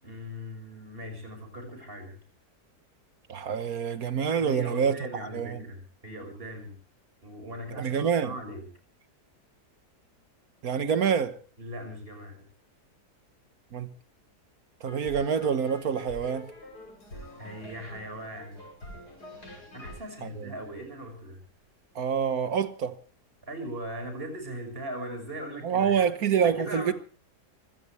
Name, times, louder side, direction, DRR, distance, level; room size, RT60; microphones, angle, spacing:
voice 1, 0.0-2.2 4.4-6.8 7.2-8.6 11.6-12.5 17.4-18.6 19.7-21.4 23.4-26.0 26.4-26.9, right 1 dB, 35° right, 6.1 m, -39 dB
voice 2, 3.3-4.9 5.3-5.6 7.7-8.3 10.6-11.4 13.7-13.9 14.8-16.5 20.2-20.5 21.9-23.0 25.6-26.9, right 7 dB, 65° right, 1.7 m, -26 dB
sound 1, 14.9-21.2, left 2 dB, 75° left, 7.1 m, -45 dB
24.5 x 17.0 x 3.2 m
omnidirectional pair, 1.7 m